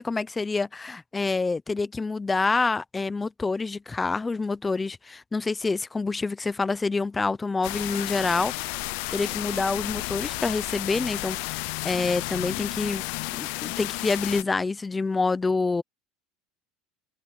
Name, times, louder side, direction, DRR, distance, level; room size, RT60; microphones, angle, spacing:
voice 1, 0.0-8.5 9.1-13.0 13.3-15.8, left 3 dB, 15° left, 0.6 m, -27 dB
sound 1, 7.6-14.4, left 28 dB, 75° left, 0.3 m, -32 dB
sound 2, 7.7-10.3, right 31 dB, 70° right, 7.4 m, -52 dB
open air
supercardioid pair, 125°, 0 cm